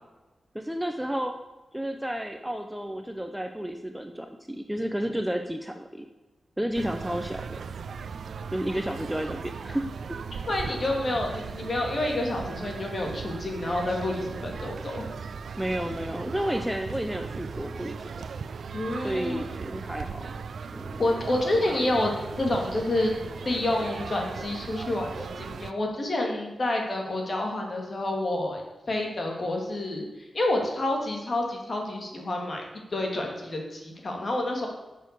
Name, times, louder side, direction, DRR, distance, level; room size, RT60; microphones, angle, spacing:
voice 1, 0.5-1.4 1.7-6.0 6.6-7.5 8.5-10.2 15.6-18.2 19.0-20.3 20.7-21.0, equal, 5° right, 5 dB, 0.7 m, -31 dB
sound 1, 6.7-25.7, right 5 dB, 80° right, 0.5 m, -38 dB
voice 2, 10.5-15.0 18.7-19.4 21.0-23.1 23.4-28.6 28.9-30.0 30.3-32.6 32.9-34.7, left 1 dB, 40° left, 1 dB, 2.7 m, -28 dB
11.0 x 6.7 x 6.8 m, 1.1 s
wide cardioid pair, 145°, 0 cm